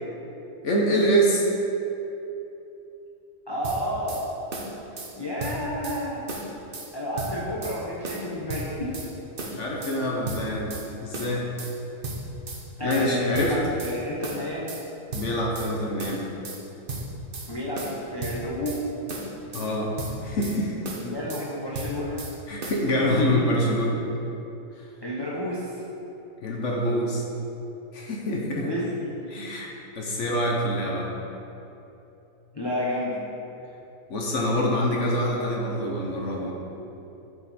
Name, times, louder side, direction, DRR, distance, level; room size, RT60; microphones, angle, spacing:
voice 1, 0.6-1.5 9.4-10.7 11.0-11.5 12.8-13.5 15.1-16.2 19.5-19.9 20.2-20.7 22.5-24.0 26.4-27.2 27.9-28.7 29.3-29.7 29.9-31.1 34.1-36.5, equal, 50° left, -2 dB, 1.1 m, -25 dB
voice 2, 3.5-4.2 5.1-6.2 6.9-9.0 12.8-14.7 17.5-18.8 21.0-22.2 25.0-25.7 28.5-29.1 32.5-33.2, left 1 dB, 25° left, -7 dB, 0.6 m, -30 dB
sound 1, 3.6-4.2 4.5-5.1 5.4-6.0 6.3-6.9 7.2-7.8 8.0-9.1 9.4-10.0 10.3-10.9 11.1-11.7 12.0-12.6 12.9-14.0 14.2-14.8 15.1-15.7 16.0-16.6 16.9-17.5 17.8-18.8 19.1-19.7 20.0-20.6 20.8-21.5 21.7-22.3 22.6-22.8, right 2 dB, 40° right, 0.8 m, -35 dB
9.6 x 4.9 x 4.2 m, 3.0 s
omnidirectional pair, 1.9 m